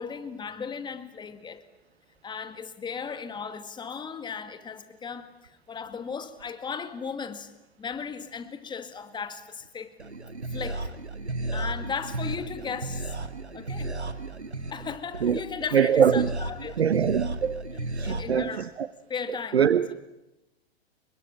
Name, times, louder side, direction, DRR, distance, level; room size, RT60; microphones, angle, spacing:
voice 1, 0.0-1.6 2.2-7.5 7.8-9.9 10.5-10.9 11.5-13.2 13.5-14.0 14.7-16.8 17.7-18.7 19.1-19.6, left 6 dB, 15° left, 2.1 m, -36 dB
sound 1, 10.0-18.2, right 2 dB, 90° right, 2.1 m, -34 dB
voice 2, 15.7-16.3 16.8-17.6 18.0-18.9 19.5-19.9, right 8 dB, 70° right, 1.1 m, -23 dB
29.5 x 24.0 x 7.4 m
figure-of-eight pair, 110°, 32 cm